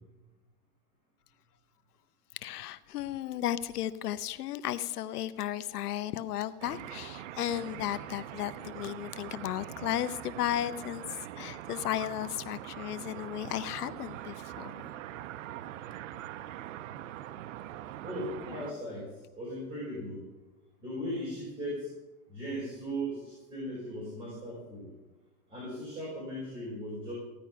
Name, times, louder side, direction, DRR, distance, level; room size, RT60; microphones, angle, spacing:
voice 1, 2.3-14.9, left 12 dB, 90° left, 13 dB, 0.8 m, -34 dB
sound 1, 6.6-18.7, right 12 dB, 55° right, 0.6 m, -43 dB
voice 2, 18.0-20.2 20.8-21.9 22.3-24.9 25.5-27.1, equal, 10° right, -8 dB, 4.9 m, -38 dB
15.5 x 10.5 x 5.8 m, 1.1 s
supercardioid pair, 165°, 45 cm